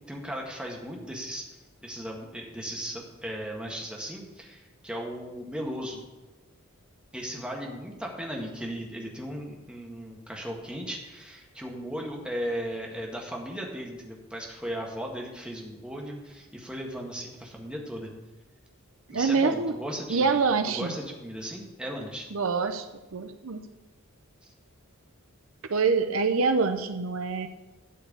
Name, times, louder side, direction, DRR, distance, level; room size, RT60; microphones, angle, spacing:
voice 1, 0.1-1.4 1.8-6.0 7.1-18.1 19.1-20.4 20.7-22.3, equal, 5° right, -1 dB, 1.6 m, -36 dB
voice 2, 19.1-19.7 20.1-20.9 22.3-23.6 25.7-27.5, right 4 dB, 65° right, 8 dB, 0.6 m, -25 dB
12.5 x 4.6 x 8.4 m, 1.1 s
head